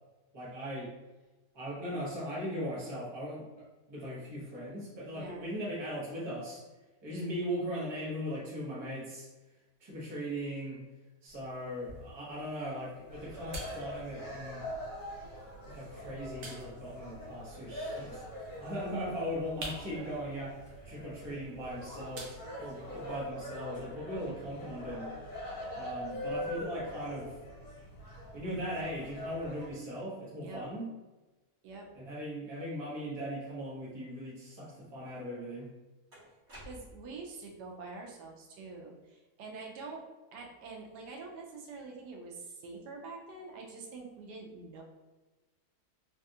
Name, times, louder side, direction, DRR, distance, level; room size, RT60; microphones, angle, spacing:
voice 1, 0.3-0.9 1.5-6.6 7.0-9.3 9.8-10.8 11.2-14.6 15.7-18.2 18.6-25.1 25.7-27.4 28.3-30.9 31.9-35.7, equal, 25° right, -7 dB, 0.7 m, -39 dB
voice 2, 5.1-5.5 30.4-30.6 31.6-31.9 36.6-40.0 40.3-44.8, right 3 dB, 80° right, -1 dB, 1.2 m, -45 dB
sound 1, 11.3-23.3, right 1 dB, 60° right, 0.9 m, -51 dB
sound 2, 13.1-29.7, left 1 dB, 55° left, 1.2 m, -43 dB
sound 3, 35.1-35.2 36.1-37.2, equal, 45° right, 1.3 m, -51 dB
3.3 x 2.4 x 2.7 m, 1.1 s
omnidirectional pair, 1.8 m